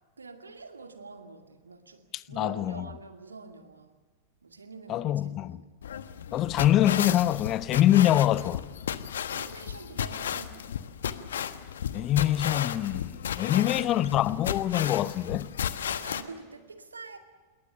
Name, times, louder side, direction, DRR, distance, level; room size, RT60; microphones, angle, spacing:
voice 1, 0.2-4.0 4.4-5.9 9.3-10.8 13.4-14.0 15.8-17.2, right 4 dB, 75° right, 2.4 m, -46 dB
voice 2, 2.3-2.9 4.9-5.6 6.3-8.6 11.9-15.5, left 13 dB, 35° left, 0.9 m, -24 dB
sound 1, 5.8-16.2, left 9 dB, 65° left, 1.2 m, -34 dB
27.5 x 21.5 x 6.9 m
figure-of-eight pair, 90°, 0 cm